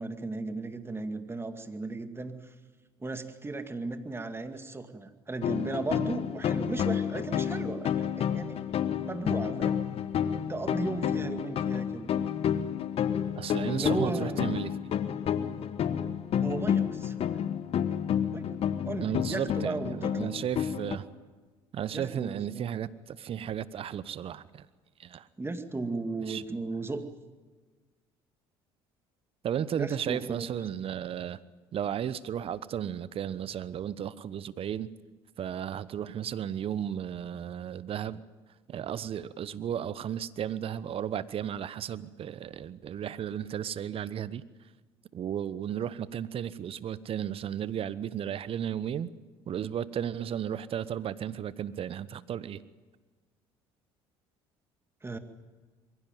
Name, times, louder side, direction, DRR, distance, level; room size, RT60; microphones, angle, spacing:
voice 1, 0.0-2.5 3.0-8.8 9.0-9.9 10.5-12.1 13.7-14.6 16.4-17.3 18.3-20.3 21.9-22.7 25.4-27.0 29.8-30.5 55.0-55.2, right 3 dB, 20° right, 8 dB, 2.2 m, -36 dB
sound 1, 5.4-21.0, left 8 dB, 55° left, 1.3 m, -30 dB
voice 2, 13.4-14.7 19.0-21.1 21.7-24.7 25.0-25.3 26.3-26.4 29.4-31.4 31.7-34.9 35.4-38.2 38.7-44.4 45.1-49.1 49.5-52.6, right 9 dB, 50° right, 17 dB, 1.0 m, -34 dB
22.5 x 16.0 x 9.2 m, 1.4 s
hypercardioid pair, 65°, 12 cm